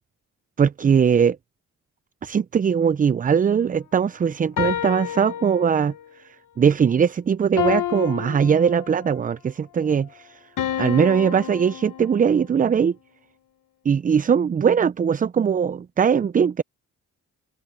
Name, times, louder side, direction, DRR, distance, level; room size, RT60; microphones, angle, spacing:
voice 1, 0.6-1.4 2.2-5.9 6.2-10.4 10.8-13.0 13.9-16.6, right 7 dB, 25° right, 0.4 m, -20 dB
sound 1, 4.6-6.1 7.6-9.2 10.6-12.5, left 11 dB, 75° left, 1.2 m, -29 dB
open air
cardioid pair, 85°, 32 cm